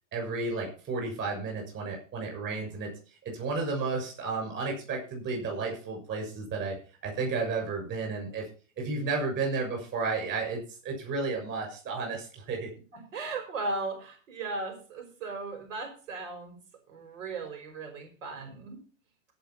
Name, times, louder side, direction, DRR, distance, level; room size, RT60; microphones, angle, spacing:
voice 1, 0.1-2.9 3.2-6.7 7.0-8.4 8.8-12.7, right 4 dB, 30° right, 1 dB, 6.7 m, -32 dB
voice 2, 12.9-16.6 16.9-18.8, right 3 dB, 85° right, 4 dB, 5.6 m, -37 dB
17.0 x 5.8 x 5.8 m, 0.38 s
supercardioid pair, 160°, 38 cm